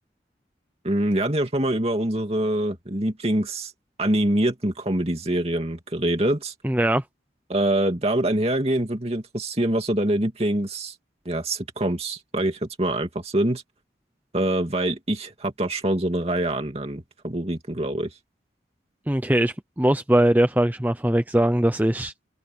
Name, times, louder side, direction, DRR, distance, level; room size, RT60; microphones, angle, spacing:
voice 1, 0.8-3.7 4.0-6.5 7.5-10.9 11.3-13.6 14.3-18.1, right 1 dB, 35° right, 2.5 m, -25 dB
voice 2, 6.6-7.0 19.1-22.1, right 1 dB, 10° right, 0.7 m, -21 dB
open air
head